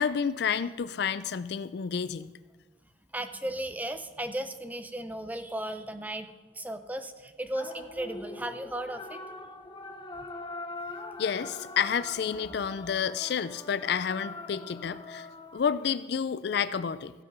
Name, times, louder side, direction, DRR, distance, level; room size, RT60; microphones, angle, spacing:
voice 1, 0.0-2.3 11.2-15.3 15.5-17.1, left 7 dB, 60° left, 15 dB, 0.4 m, -30 dB
voice 2, 3.1-6.3 6.5-9.2, right 1 dB, 10° right, 10 dB, 0.5 m, -35 dB
sound 1, 7.5-15.6, left 3 dB, 25° left, 0.7 m, -42 dB
16.0 x 5.9 x 5.4 m, 1.3 s
head